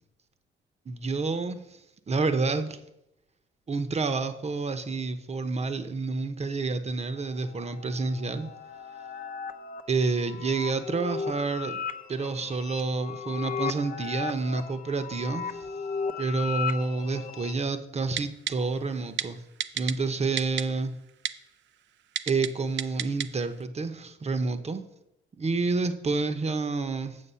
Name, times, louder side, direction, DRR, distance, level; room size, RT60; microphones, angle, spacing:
voice 1, 0.9-1.6 2.1-2.8 3.7-8.5 9.9-11.8 12.1-15.7 16.2-19.4 19.7-20.9 22.3-24.8 25.4-27.2, right 3 dB, 35° right, 0.9 m, -29 dB
sound 1, 7.2-17.5, left 5 dB, 45° left, 0.8 m, -36 dB
Typing, 18.2-18.5 19.2-19.3 19.6-19.9 20.4-20.6 21.2-21.3 22.2-22.5 22.8-23.3 23.6-23.7, right 11 dB, 70° right, 0.6 m, -29 dB
8.3 x 6.8 x 5.6 m
cardioid pair, 90°, 20 cm